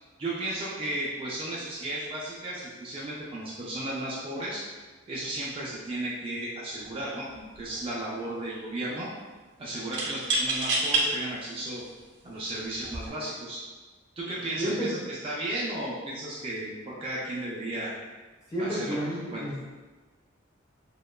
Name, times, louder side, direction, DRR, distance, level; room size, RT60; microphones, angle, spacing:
voice 1, 0.2-4.6 5.1-9.1 9.6-11.8 12.2-13.6 14.2-17.9 18.6-19.0 19.3-19.4, right 1 dB, 25° right, -6 dB, 0.3 m, -34 dB
sound 1, 6.8-7.0 7.3-8.0 9.9-11.1 11.8-11.9 12.8-13.1, right 2 dB, 80° right, 0.6 m, -27 dB
voice 2, 14.6-15.0 18.5-19.7, right 1 dB, 20° left, -7 dB, 0.6 m, -30 dB
2.8 x 2.2 x 2.2 m, 1.3 s
head